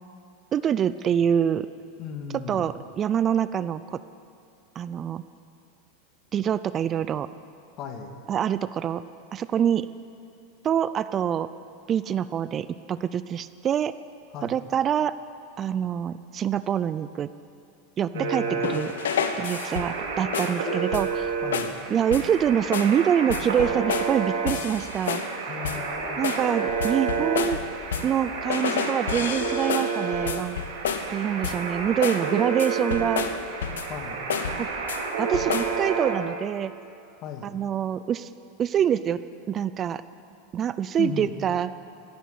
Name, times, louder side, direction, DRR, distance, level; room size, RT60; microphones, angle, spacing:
voice 1, 0.5-1.7 2.5-4.0 4.8-5.2 6.3-7.3 8.3-9.0 9.3-9.9 10.6-11.5 11.9-13.9 14.4-15.1 15.6-17.3 18.0-18.4 18.7-18.9 19.4-21.4 21.9-25.2 26.2-27.6 28.0-30.6 31.1-33.2 34.6-34.7 35.2-36.7 37.4-38.3 38.6-39.2 39.5-40.0 40.5-41.7, right 9 dB, 30° right, 15 dB, 0.4 m, -25 dB
voice 2, 2.0-2.7 6.9-7.0 7.8-8.1 14.3-14.6 18.1-18.7 21.4-21.7 25.5-26.2 33.9-34.3 37.2-37.5 41.0-41.3, left 7 dB, 45° left, 5 dB, 2.1 m, -36 dB
sound 1, 18.1-36.1, right 5 dB, 80° right, 3.4 m, -30 dB
sound 2, 18.6-20.0 20.3-20.6 20.9-21.2 21.5-21.8 22.1-22.4 22.7-23.0 23.3-24.2 24.5-25.3 25.6-25.9 26.2-28.2 28.5-31.1 31.4-31.7 32.0-32.3 32.6-34.0 34.3-35.0 35.3-35.8, left 7 dB, 85° left, 1.0 m, -30 dB
15.0 x 11.0 x 8.6 m, 2.4 s
hypercardioid pair, 115°, 0 cm